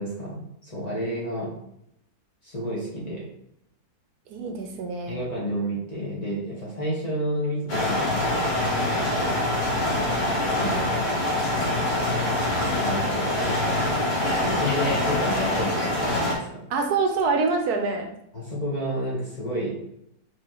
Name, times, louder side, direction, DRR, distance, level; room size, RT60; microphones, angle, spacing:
voice 1, 0.0-1.5 2.4-3.3 5.1-8.3 9.9-10.8 12.6-13.0 14.3-16.6 18.3-19.8, equal, 30° left, -6 dB, 1.1 m, -30 dB
voice 2, 4.3-5.2 14.9-15.0 16.7-18.1, right 4 dB, 75° right, 4 dB, 1.1 m, -25 dB
sound 1, 7.7-16.3, left 1 dB, 50° left, 1.6 m, -24 dB
4.7 x 3.3 x 3.0 m, 0.76 s
omnidirectional pair, 1.7 m